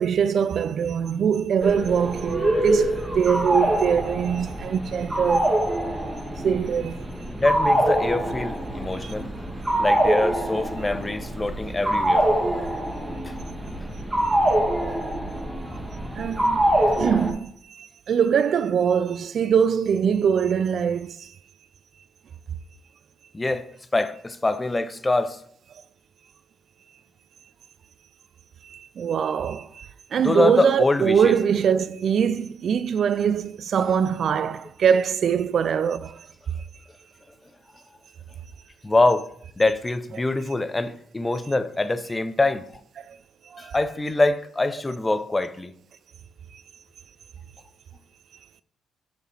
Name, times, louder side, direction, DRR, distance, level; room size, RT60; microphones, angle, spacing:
voice 1, 0.0-5.5 6.4-7.1 9.0-9.1 14.2-14.4 16.2-21.3 28.6-36.3 43.1-43.2 43.5-43.7, right 7 dB, 60° right, 0.3 m, -23 dB
sound 1, 1.6-17.3, right 1 dB, 15° right, 1.3 m, -24 dB
voice 2, 7.4-9.3 9.8-12.3 13.2-13.3 23.3-25.4 30.2-31.3 38.8-39.2 39.6-42.6 43.6-45.7, left 2 dB, 20° left, 0.6 m, -24 dB
7.5 x 4.9 x 3.3 m
cardioid pair, 90°, 0 cm